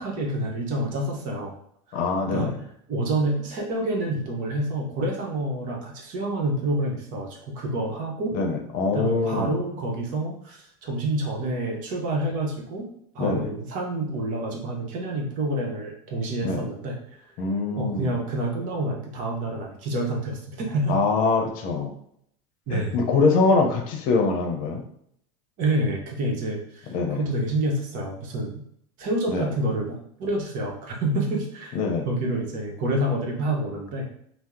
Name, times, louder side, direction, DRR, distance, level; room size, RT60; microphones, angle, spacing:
voice 1, 0.0-1.6 2.3-2.5 2.9-8.3 8.9-12.9 13.1-17.3 17.8-21.0 22.7-22.9 25.6-28.6 29.0-31.8 32.1-34.1, right 1 dB, 55° right, 0 dB, 0.9 m, -28 dB
voice 2, 1.9-2.6 8.3-9.5 13.2-13.5 16.4-16.6 17.4-18.1 20.9-21.9 22.7-24.8 26.9-27.2 29.3-29.5 31.7-32.1, left 4 dB, 55° left, 4 dB, 0.7 m, -23 dB
2.8 x 2.0 x 3.6 m, 0.69 s
supercardioid pair, 110°, 17 cm